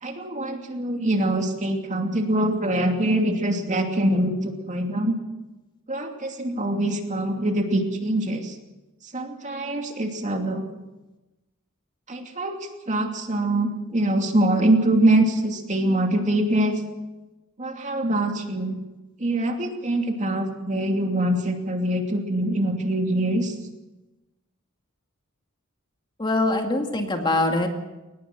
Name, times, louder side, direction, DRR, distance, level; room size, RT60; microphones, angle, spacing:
voice 1, 0.0-5.2 5.9-8.6 9.1-10.7 12.1-12.6 12.9-16.7 17.6-18.8 19.2-23.5, right 1 dB, 35° right, 3 dB, 2.7 m, -24 dB
voice 2, 26.2-27.7, left 2 dB, 20° left, 3 dB, 2.2 m, -23 dB
22.0 x 19.5 x 6.1 m, 1.0 s
head